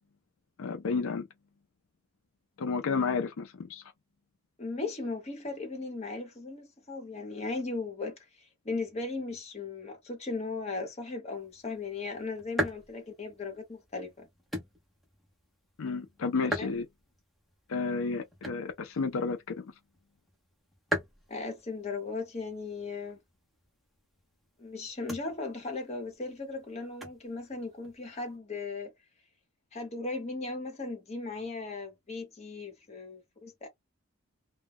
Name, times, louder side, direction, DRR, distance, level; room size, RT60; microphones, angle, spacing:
voice 1, 0.6-1.3 2.6-3.8 15.8-16.9 17.7-19.7, left 4 dB, 85° left, 0.5 m, -31 dB
voice 2, 4.6-14.3 16.5-16.7 21.3-23.2 24.6-28.9 29.7-33.7, left 3 dB, 30° left, 1.0 m, -37 dB
sound 1, 11.3-28.4, equal, ahead, 0.6 m, -42 dB
2.2 x 2.1 x 3.4 m
head